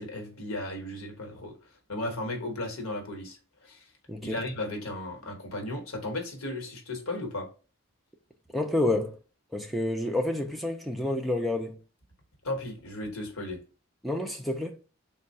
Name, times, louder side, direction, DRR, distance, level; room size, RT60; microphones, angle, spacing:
voice 1, 0.0-1.6 1.9-3.8 4.2-7.5 12.4-13.6, left 1 dB, 80° left, 1.2 m, -35 dB
voice 2, 4.1-4.4 8.5-9.2 9.5-11.8 14.0-14.8, left 1 dB, ahead, 0.4 m, -29 dB
3.5 x 2.3 x 4.0 m
head